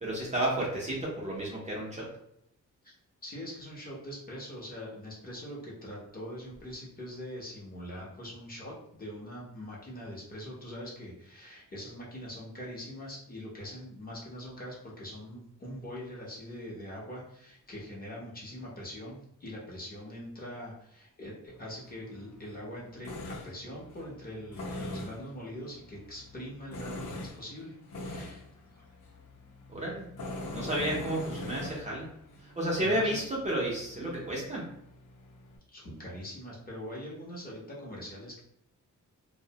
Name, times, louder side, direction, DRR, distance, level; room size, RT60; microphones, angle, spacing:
voice 1, 0.0-2.1 29.7-30.1 30.5-32.1 32.6-34.6, right 1 dB, 25° right, -5 dB, 0.5 m, -31 dB
voice 2, 3.2-27.8 28.0-28.8 32.8-33.2 35.7-38.4, equal, 30° left, -5 dB, 0.7 m, -43 dB
Tools, 21.5-35.6, left 1 dB, 80° left, 0.7 m, -43 dB
2.6 x 2.0 x 2.7 m, 0.73 s
wide cardioid pair, 175°, 31 cm